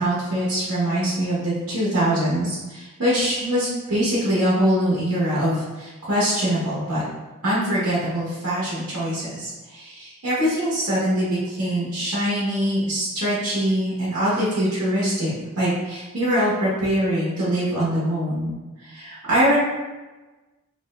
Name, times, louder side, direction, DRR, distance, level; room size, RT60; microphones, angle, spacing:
voice 1, 0.0-7.0 7.4-18.5 18.8-19.6, equal, 85° right, -9 dB, 0.9 m, -23 dB
2.9 x 2.1 x 3.0 m, 1.2 s
head